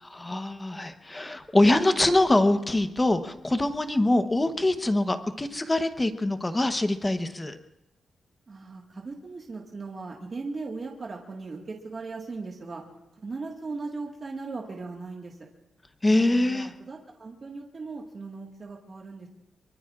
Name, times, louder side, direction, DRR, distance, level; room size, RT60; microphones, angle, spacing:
voice 1, 0.1-7.6 16.0-16.7, left 1 dB, 15° left, 8 dB, 0.9 m, -24 dB
voice 2, 8.5-12.8 13.1-15.4 16.1-19.3, right 3 dB, 35° right, -1 dB, 1.7 m, -38 dB
24.5 x 23.5 x 2.5 m, 0.91 s
wide cardioid pair, 160°, 0 cm